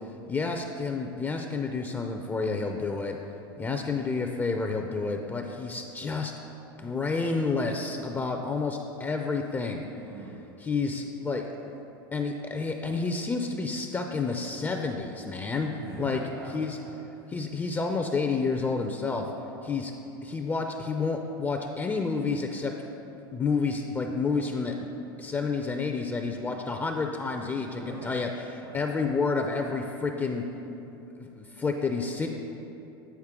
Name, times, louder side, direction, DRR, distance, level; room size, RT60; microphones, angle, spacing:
voice 1, 0.3-3.2 3.6-6.3 6.8-9.9 10.6-11.7 12.1-16.2 16.5-16.8 17.3-19.3 19.6-19.9 20.2-22.7 23.3-24.9 25.2-30.4 31.2-32.3, left 4 dB, 15° left, 3 dB, 0.4 m, -30 dB
voice 2, 10.0-10.4 15.8-16.9 17.1-17.3 27.7-28.1 28.6-28.8, right 2 dB, 70° right, -5 dB, 1.1 m, -42 dB
8.1 x 4.2 x 3.6 m, 3.0 s
hypercardioid pair, 95°, 13 cm